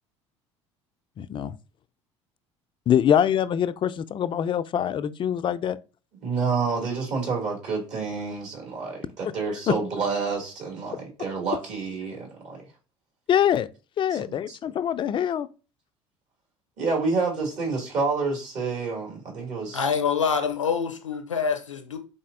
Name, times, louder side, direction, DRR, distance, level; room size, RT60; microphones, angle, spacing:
voice 1, 1.2-1.5 2.9-5.8 9.7-9.8 13.3-13.7 14.0-15.5, left 9 dB, 30° left, 0.4 m, -24 dB
voice 2, 6.2-12.6 14.1-14.2 14.5-14.6 16.8-19.8, right 4 dB, 50° right, 2.3 m, -28 dB
voice 3, 19.7-22.0, left 6 dB, 90° left, 0.6 m, -26 dB
4.2 x 3.9 x 2.5 m
figure-of-eight pair, 65°, 16 cm